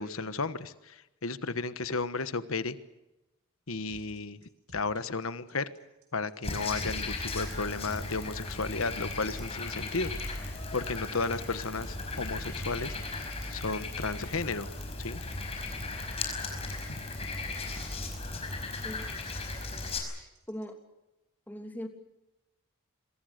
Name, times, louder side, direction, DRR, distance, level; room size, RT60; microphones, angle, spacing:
voice 1, 0.0-2.8 3.7-4.4 4.7-5.7 6.1-13.0 13.5-14.7 15.0-15.2 16.9-17.0, left 3 dB, 70° left, 13 dB, 1.3 m, -34 dB
sound 1, 3.9-20.7, right 1 dB, 85° right, 6.2 m, -53 dB
Frog, 6.4-20.0, left 3 dB, 25° left, 5.1 m, -36 dB
voice 2, 19.4-19.9 20.2-20.7 21.5-21.9, equal, 10° left, 4 dB, 2.9 m, -41 dB
27.0 x 23.0 x 6.7 m, 0.98 s
head